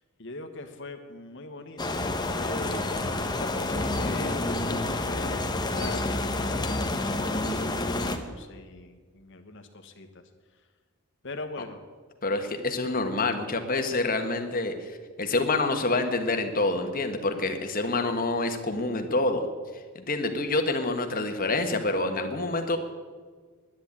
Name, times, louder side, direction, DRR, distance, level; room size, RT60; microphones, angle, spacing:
voice 1, 0.2-2.0 2.3-3.0 3.3-10.1 11.2-11.8, left 2 dB, 60° left, 6 dB, 1.4 m, -41 dB
sound 1, 1.8-8.2, left 2 dB, 20° left, 0.9 m, -29 dB
voice 2, 12.2-19.4 19.9-22.8, left 2 dB, 40° left, 6 dB, 1.4 m, -27 dB
10.5 x 10.5 x 8.8 m, 1.5 s
head